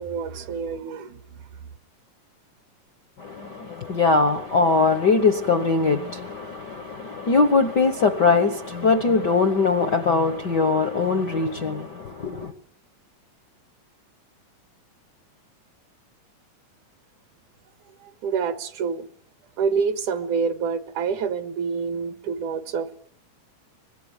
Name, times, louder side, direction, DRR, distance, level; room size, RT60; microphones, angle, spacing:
voice 1, 0.0-1.4 18.0-19.1 19.6-22.9, right 6 dB, 75° right, 2.9 m, -27 dB
voice 2, 3.2-12.5, left 4 dB, 55° left, 1.2 m, -21 dB
24.5 x 21.0 x 9.0 m
omnidirectional pair, 3.7 m